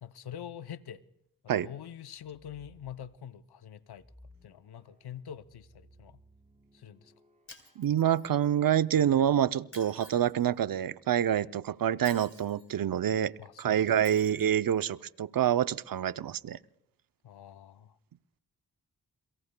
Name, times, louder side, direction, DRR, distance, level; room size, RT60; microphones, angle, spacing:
voice 1, 0.0-1.0 1.6-4.0 4.4-6.2 6.7-7.1 13.4-13.8 14.1-14.2 17.2-18.0, left 9 dB, 80° left, 0.7 m, -45 dB
sound 1, 2.1-3.1 3.9-9.9, right 1 dB, 20° right, 4.8 m, -60 dB
Shatter, 7.5-8.5 9.7-10.5 12.0-12.7 14.0-14.6, left 2 dB, 35° left, 3.2 m, -51 dB
voice 2, 7.8-13.3 13.6-16.6, right 10 dB, 65° right, 0.6 m, -27 dB
29.0 x 22.5 x 2.2 m
cardioid pair, 60°, 38 cm